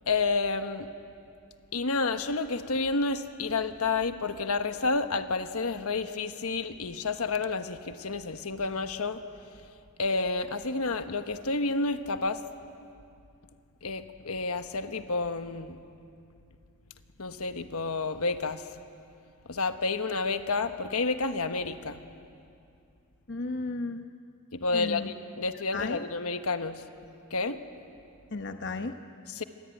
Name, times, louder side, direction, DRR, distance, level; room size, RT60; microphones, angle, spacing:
voice 1, 0.1-0.9 1.7-9.2 10.0-12.4 13.8-15.8 17.2-18.6 19.5-22.0 24.5-26.8 27.3-27.6 29.4-29.5, left 3 dB, 85° left, 8 dB, 1.2 m, -30 dB
voice 2, 23.3-24.1 24.7-25.1 25.7-26.0 28.3-29.0, left 3 dB, 55° left, 7 dB, 1.0 m, -34 dB
27.5 x 22.0 x 9.2 m, 2.5 s
head